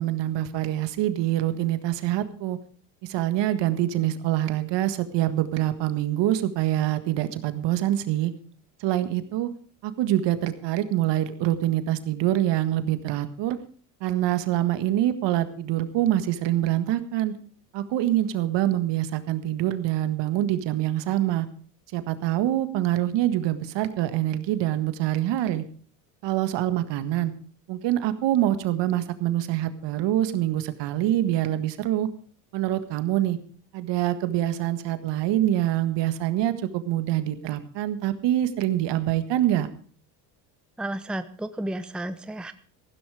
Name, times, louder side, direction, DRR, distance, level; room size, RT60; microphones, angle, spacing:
voice 1, 0.0-2.6 3.0-8.3 8.8-9.5 9.8-13.6 14.0-17.4 17.7-21.5 21.9-25.6 26.2-27.3 27.7-32.1 32.5-33.4 33.7-39.7, right 13 dB, 60° right, 11 dB, 1.7 m, -25 dB
voice 2, 40.8-42.5, right 1 dB, ahead, 11 dB, 0.8 m, -32 dB
15.0 x 12.5 x 4.9 m, 0.44 s
supercardioid pair, 85°, 48 cm